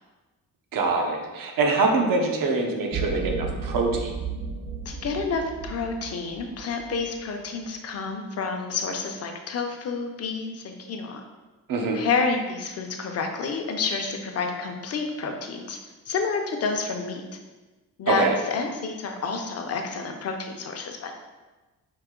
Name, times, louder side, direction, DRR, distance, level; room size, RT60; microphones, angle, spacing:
voice 1, 0.7-4.1 11.7-12.0 18.1-18.4, right 3 dB, 80° right, 2 dB, 0.8 m, -24 dB
sound 1, 2.9-7.2, right 4 dB, 40° right, 0.7 m, -34 dB
voice 2, 4.9-11.2 11.9-15.8 16.1-17.2 18.0-21.1, left 4 dB, 45° left, 4 dB, 0.6 m, -29 dB
4.8 x 2.7 x 3.7 m, 1.2 s
cardioid pair, 145°, 33 cm